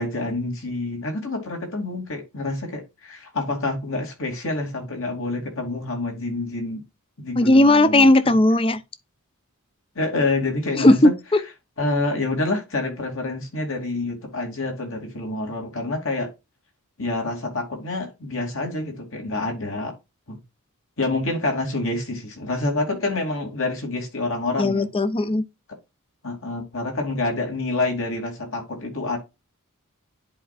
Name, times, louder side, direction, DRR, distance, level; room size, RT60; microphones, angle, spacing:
voice 1, 0.0-6.8 7.2-8.4 9.9-11.1 11.8-16.3 17.0-19.9 20.3-20.4 21.0-24.9 26.2-29.2, left 2 dB, 65° left, 2.7 m, -27 dB
voice 2, 7.4-8.8 10.8-11.4 24.6-25.4, left 1 dB, 25° left, 0.6 m, -16 dB
10.5 x 4.5 x 2.4 m
head